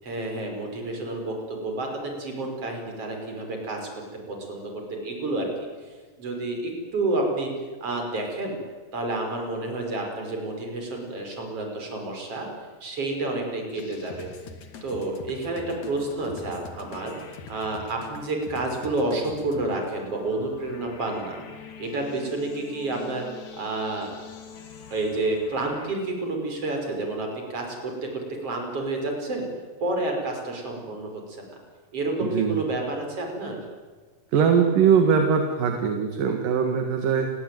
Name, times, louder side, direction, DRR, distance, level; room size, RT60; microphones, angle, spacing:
voice 1, 0.0-3.9 4.3-5.5 5.8-7.5 7.8-8.6 8.9-12.5 12.8-14.3 14.8-17.1 17.5-21.4 21.8-23.3 23.6-24.1 24.9-29.5 29.8-31.4 31.9-33.6, right 2 dB, 35° right, 2 dB, 6.3 m, -30 dB
sound 1, 13.7-26.0, left 6 dB, 50° left, 3.2 m, -44 dB
voice 2, 32.2-32.6 34.3-37.3, right 6 dB, 60° right, 5 dB, 3.3 m, -21 dB
29.5 x 21.5 x 9.4 m, 1.5 s
omnidirectional pair, 4.8 m